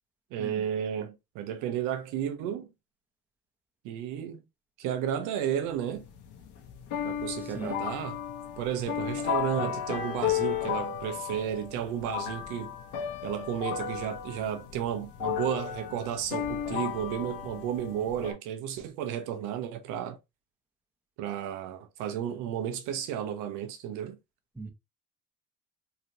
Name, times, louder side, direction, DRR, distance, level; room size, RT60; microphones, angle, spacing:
voice 1, 0.3-2.7 3.8-4.4 4.8-6.0 7.0-8.2 8.6-12.7 13.2-20.2 21.2-24.2, right 9 dB, 85° right, 0.8 m, -33 dB
sound 1, 5.7-18.3, left 9 dB, 75° left, 1.0 m, -34 dB
voice 2, 7.4-7.8 24.6-24.7, right 3 dB, 5° right, 0.9 m, -39 dB
3.3 x 2.8 x 2.6 m
supercardioid pair, 80°, 30 cm